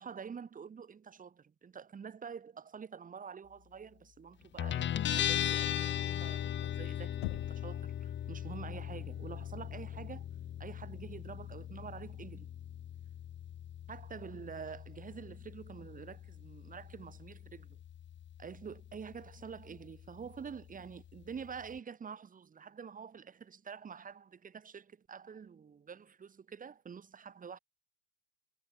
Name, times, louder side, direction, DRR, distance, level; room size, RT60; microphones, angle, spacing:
voice 1, 0.0-10.3 10.6-12.5 13.9-17.8 18.4-27.6, right 6 dB, 20° right, 7.7 m, -47 dB
Guitar, 4.6-21.8, left 10 dB, 30° left, 3.3 m, -39 dB
Knock, 7.2-7.9, left 22 dB, 55° left, 2.7 m, -41 dB
figure-of-eight pair, 85°, 36 cm